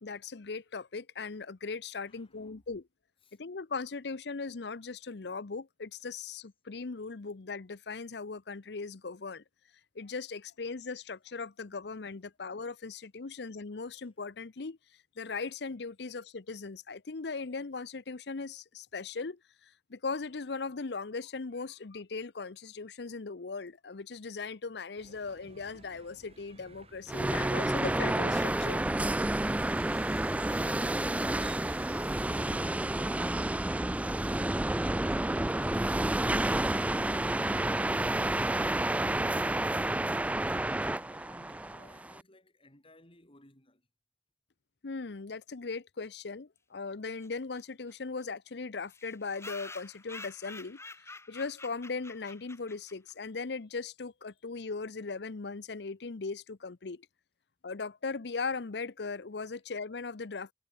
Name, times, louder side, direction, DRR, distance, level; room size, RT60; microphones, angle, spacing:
voice 1, 0.0-2.8 3.4-9.4 9.9-14.8 15.2-19.4 19.9-28.8 44.8-50.8 51.3-57.1 57.6-60.5, left 4 dB, 70° left, 0.7 m, -38 dB
voice 2, 2.0-2.6 3.2-3.4 13.3-13.4 39.4-43.9, left 1 dB, 30° left, 7.3 m, -60 dB
sound 1, 25.0-42.0, right 3 dB, 35° right, 2.8 m, -55 dB
sound 2, 27.1-42.2, right 1 dB, 10° right, 0.4 m, -30 dB
sound 3, 47.2-47.3 47.5-47.6 47.9-48.0 48.2-48.3 48.9-53.1, left 3 dB, 15° left, 2.5 m, -48 dB
head